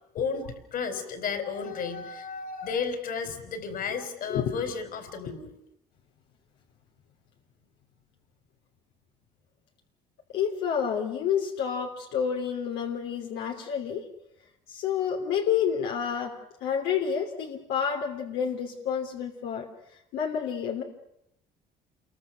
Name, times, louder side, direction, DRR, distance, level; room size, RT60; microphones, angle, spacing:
voice 1, 0.1-0.5 0.7-5.6, left 5 dB, 60° left, 9 dB, 4.2 m, -33 dB
voice 2, 4.3-4.7 10.3-14.0 14.7-16.3 16.6-19.7 20.1-20.8, left 7 dB, 85° left, 1 dB, 3.2 m, -29 dB
28.5 x 22.5 x 6.5 m, 0.80 s
cardioid pair, 110°, 17 cm